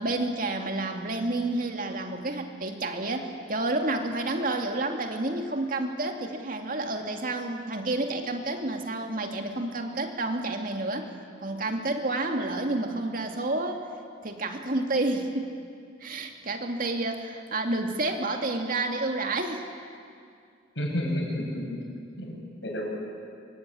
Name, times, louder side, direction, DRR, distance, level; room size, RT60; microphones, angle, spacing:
voice 1, 0.0-11.1 11.4-13.8 14.2-15.5 16.0-19.7, right 2 dB, 50° right, 4 dB, 2.4 m, -30 dB
voice 2, 20.8-21.7 22.2-22.9, equal, 70° left, 0 dB, 7.1 m, -31 dB
25.5 x 23.5 x 9.9 m, 2.3 s
head